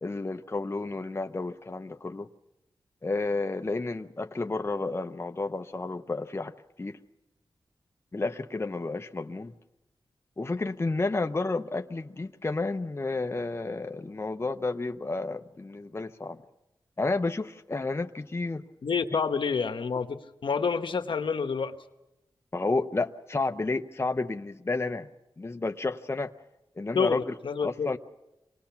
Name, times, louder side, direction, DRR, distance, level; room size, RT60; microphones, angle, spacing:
voice 1, 0.0-2.3 3.0-7.0 8.1-9.5 10.4-16.4 17.0-18.7 22.5-25.1 25.4-26.3 26.8-28.0, left 3 dB, 30° left, 6 dB, 0.8 m, -31 dB
voice 2, 18.8-21.7 26.9-27.9, left 5 dB, 70° left, 7 dB, 1.2 m, -28 dB
26.5 x 19.5 x 5.9 m, 0.92 s
cardioid pair, 65°, 9 cm